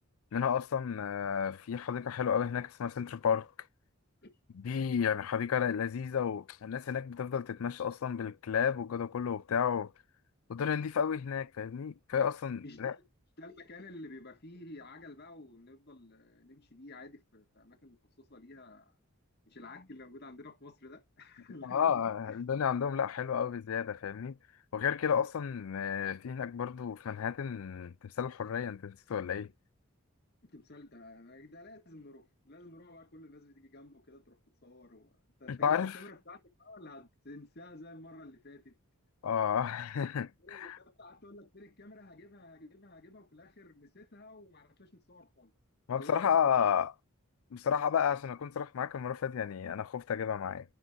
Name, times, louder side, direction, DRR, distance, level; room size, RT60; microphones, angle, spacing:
voice 1, 0.3-3.5 4.6-9.9 10.5-12.9 21.6-24.4 24.7-29.5 35.5-36.0 39.2-40.8 45.9-46.9 47.5-50.6, left 7 dB, 80° left, 0.4 m, -32 dB
voice 2, 12.6-12.9 13.4-19.0 19.5-22.4 30.4-38.8 40.4-45.5 46.0-46.7, left 2 dB, 50° left, 1.8 m, -51 dB
11.0 x 5.1 x 2.6 m
head